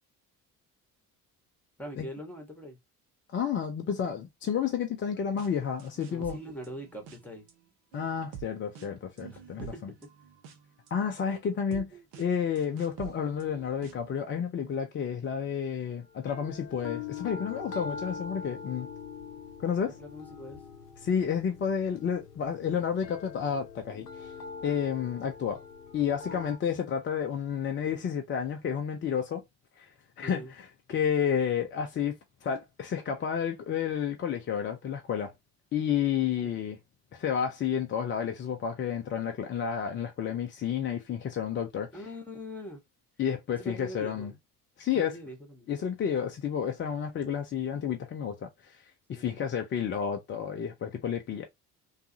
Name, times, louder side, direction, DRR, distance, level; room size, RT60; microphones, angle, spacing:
voice 1, 1.8-2.8 6.0-7.5 9.3-9.9 20.0-20.6 30.2-30.5 36.2-36.6 41.9-42.8 43.5-44.3 44.9-45.7 49.1-49.4, equal, 5° left, 1.1 m, -43 dB
voice 2, 3.3-6.4 7.9-9.6 10.9-11.9 12.2-18.9 19.6-20.0 21.0-24.3 24.6-25.6 25.9-29.4 29.8-29.9 30.2-32.1 32.4-35.3 35.7-36.8 37.1-41.9 43.2-44.3 44.8-45.1 45.7-51.4, left 7 dB, 25° left, 0.5 m, -31 dB
sound 1, 5.4-5.5 5.8-7.5 7.9-14.1, right 10 dB, 55° right, 0.8 m, -47 dB
sound 2, 16.2-26.6, left 5 dB, 80° left, 0.6 m, -43 dB
2.7 x 2.3 x 2.6 m
figure-of-eight pair, 55°, 46 cm